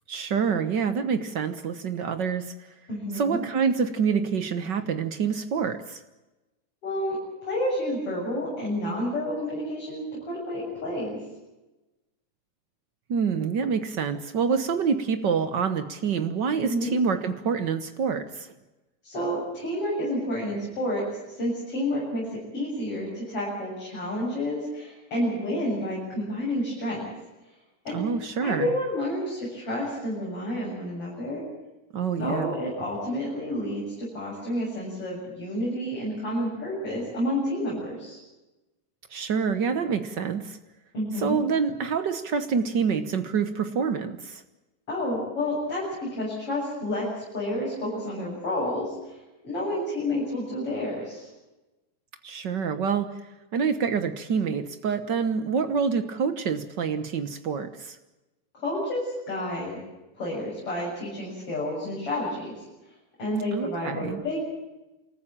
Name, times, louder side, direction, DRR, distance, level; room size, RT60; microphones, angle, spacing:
voice 1, 0.1-2.5 3.1-6.0 13.1-18.5 27.9-28.7 31.9-32.5 39.1-40.6 41.1-44.4 52.2-53.1 53.5-58.0 63.5-64.2, right 6 dB, 75° right, 10 dB, 1.0 m, -27 dB
voice 2, 2.9-3.4 6.8-7.2 7.4-11.1 16.6-16.9 19.0-27.1 27.8-28.0 28.4-31.4 32.2-38.2 40.9-41.4 44.9-45.8 46.1-47.1 47.3-51.3 58.5-59.8 60.1-62.5 63.2-64.4, left 1 dB, 40° left, -5 dB, 8.5 m, -30 dB
27.5 x 14.5 x 8.8 m, 1.0 s
omnidirectional pair, 3.8 m